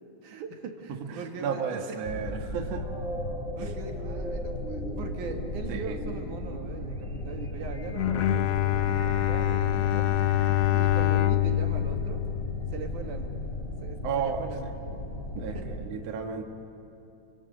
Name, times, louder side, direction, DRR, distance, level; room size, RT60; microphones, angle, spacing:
voice 1, 0.2-2.0 3.6-10.2 10.8-12.2 12.7-13.3 13.8-14.7 15.4-15.7, right 4 dB, 85° right, 3 dB, 3.4 m, -40 dB
voice 2, 1.1-2.8 3.6-3.7 5.9-6.0 14.0-14.5 15.4-15.5 15.9-16.4, right 6 dB, 60° right, 3 dB, 2.5 m, -32 dB
sound 1, 2.0-15.8, left 1 dB, 25° left, 2.2 m, -36 dB
sound 2, 2.7-11.7, equal, 5° right, 0.8 m, -42 dB
Bowed string instrument, 7.9-13.2, left 12 dB, 70° left, 1.6 m, -26 dB
29.5 x 24.5 x 8.0 m, 2.8 s
omnidirectional pair, 3.5 m